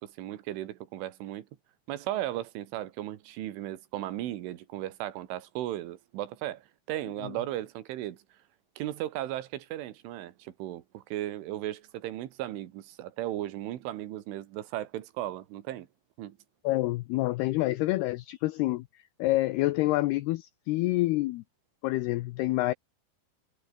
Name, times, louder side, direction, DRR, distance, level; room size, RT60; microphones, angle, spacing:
voice 1, 0.0-1.5 1.9-8.2 8.8-15.9 16.2-16.4, right 13 dB, 85° right, 4.1 m, -36 dB
voice 2, 16.6-21.4 21.8-22.7, left 18 dB, 90° left, 2.3 m, -27 dB
omnidirectional pair, 5.4 m